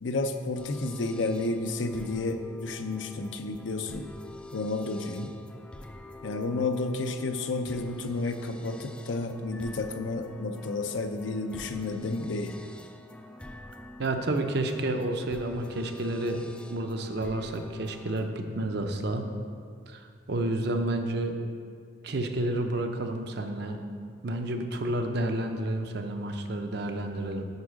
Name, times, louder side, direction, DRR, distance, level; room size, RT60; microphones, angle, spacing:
voice 1, 0.0-4.1 4.5-5.3 6.2-12.6, left 2 dB, 85° left, 7 dB, 0.6 m, -31 dB
sound 1, 0.6-18.3, left 1 dB, 5° left, 0.3 m, -47 dB
voice 2, 14.0-16.4 16.7-19.2 19.9-21.4 22.0-23.8 24.2-27.5, right 1 dB, 60° right, 5 dB, 0.7 m, -30 dB
8.3 x 4.8 x 6.2 m, 2.2 s
head